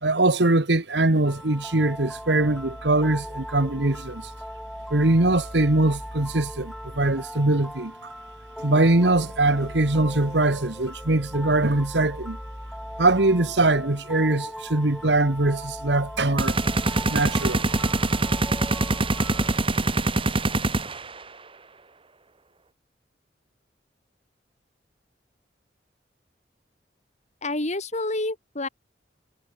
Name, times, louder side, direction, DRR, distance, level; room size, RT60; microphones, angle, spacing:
voice 1, 0.0-4.3 4.9-8.1 8.6-12.4 13.0-16.6 17.1-17.7, right 2 dB, 75° right, 1.7 m, -22 dB
sound 1, 1.2-19.6, equal, ahead, 2.2 m, -38 dB
sound 2, 16.4-21.2, right 2 dB, 30° right, 2.0 m, -24 dB
voice 2, 27.4-28.7, left 2 dB, 40° left, 3.1 m, -28 dB
head